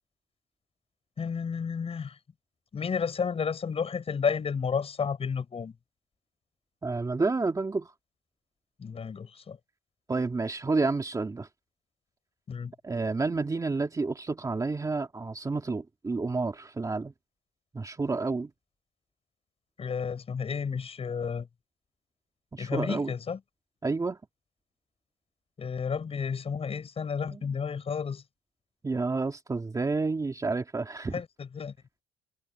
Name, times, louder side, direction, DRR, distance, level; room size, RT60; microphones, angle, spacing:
voice 1, 1.2-2.2 2.7-5.7 8.8-9.6 12.5-12.7 19.8-21.5 22.6-23.4 25.6-28.2 31.1-31.7, left 6 dB, 35° left, 6.9 m, -32 dB
voice 2, 6.8-7.9 10.1-11.5 12.8-17.1 17.7-18.5 22.5-23.1 23.8-24.2 27.3-27.4 28.8-31.1, right 3 dB, 20° right, 2.4 m, -30 dB
cardioid pair, 110°, 17 cm